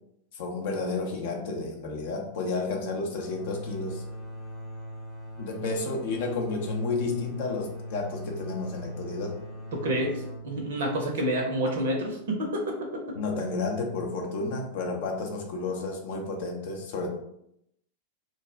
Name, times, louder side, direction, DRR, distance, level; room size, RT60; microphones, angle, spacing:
voice 1, 0.3-4.0 5.4-9.4 13.2-17.1, left 3 dB, 50° left, 2 dB, 0.5 m, -31 dB
sound 1, 3.1-12.6, equal, 20° left, 0.8 m, -40 dB
voice 2, 9.7-12.8, right 1 dB, 60° right, 1 dB, 0.5 m, -28 dB
2.4 x 2.0 x 3.3 m, 0.77 s
figure-of-eight pair, 90°, 0 cm